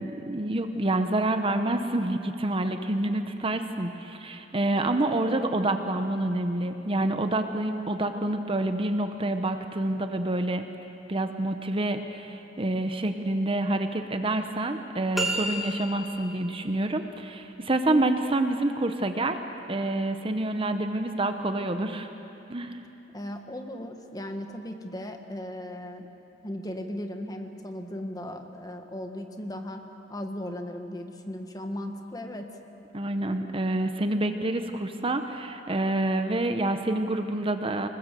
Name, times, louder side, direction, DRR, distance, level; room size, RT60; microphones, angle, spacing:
voice 1, 0.0-10.7 11.1-19.4 19.7-22.1 22.5-22.8 32.9-37.9, right 2 dB, 30° right, 7 dB, 0.9 m, -27 dB
sound 1, 15.1-16.3, right 1 dB, ahead, 2.6 m, -30 dB
voice 2, 23.1-26.1 26.4-29.8 30.1-32.5, left 1 dB, 20° left, 5 dB, 1.6 m, -37 dB
27.0 x 20.0 x 7.6 m, 2.9 s
head